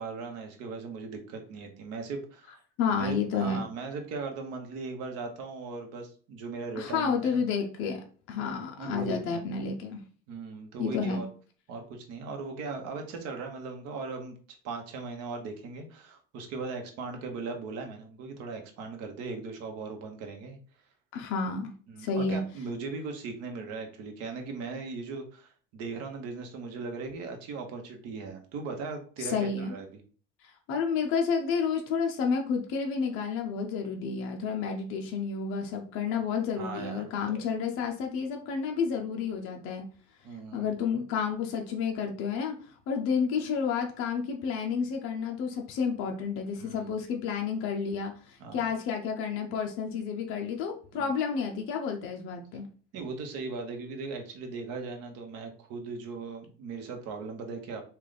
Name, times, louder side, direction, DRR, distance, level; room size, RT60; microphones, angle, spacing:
voice 1, 0.0-2.6 2.9-7.4 8.8-9.4 10.3-11.3 11.7-14.4 14.6-20.6 21.9-29.9 36.6-37.0 37.3-37.4 40.2-40.7 46.6-46.9 48.4-48.7 50.9-51.1 52.9-57.8, right 4 dB, 50° right, 4 dB, 0.9 m, -38 dB
voice 2, 2.8-3.6 6.8-10.0 10.8-11.2 21.1-21.7 22.0-22.4 29.2-29.7 30.7-39.8 40.5-42.5 42.9-52.7, left 6 dB, 45° left, 2 dB, 0.6 m, -30 dB
3.3 x 2.4 x 3.9 m, 0.41 s
cardioid pair, 165°, 31 cm